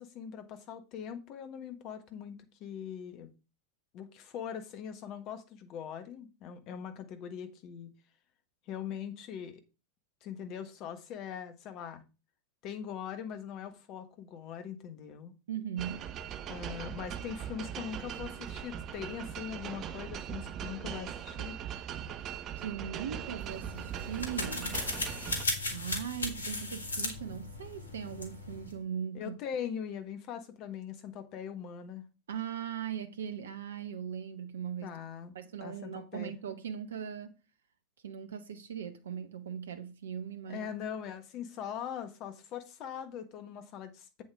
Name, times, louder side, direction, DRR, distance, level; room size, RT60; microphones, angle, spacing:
voice 1, 0.0-3.3 3.9-7.9 8.7-9.6 10.2-12.0 12.6-15.3 16.5-21.5 29.1-32.1 34.8-35.3 35.6-36.3 40.5-44.2, left 8 dB, 40° left, 1.4 m, -41 dB
voice 2, 15.5-16.1 22.2-24.8 25.7-29.4 32.3-35.0 35.3-37.3 38.0-40.7, right 8 dB, 65° right, 0.8 m, -39 dB
sound 1, 15.8-25.4, right 9 dB, 30° right, 0.7 m, -40 dB
sound 2, 23.4-28.8, left 2 dB, 75° left, 1.7 m, -37 dB
7.9 x 7.5 x 3.5 m
figure-of-eight pair, 90°, 0 cm